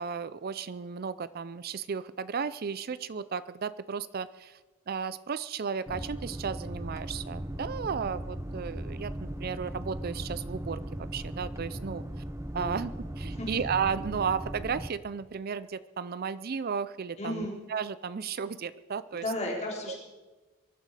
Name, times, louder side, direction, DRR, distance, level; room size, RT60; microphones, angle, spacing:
voice 1, 0.0-4.6 4.9-12.0 12.5-12.9 13.2-19.3 19.9-20.0, right 6 dB, 45° right, 16 dB, 0.4 m, -34 dB
sound 1, 5.9-14.9, right 1 dB, 15° right, 0.7 m, -38 dB
voice 2, 17.2-17.5 19.1-20.0, left 1 dB, 30° left, -1 dB, 3.8 m, -34 dB
23.0 x 12.0 x 4.9 m, 1.2 s
head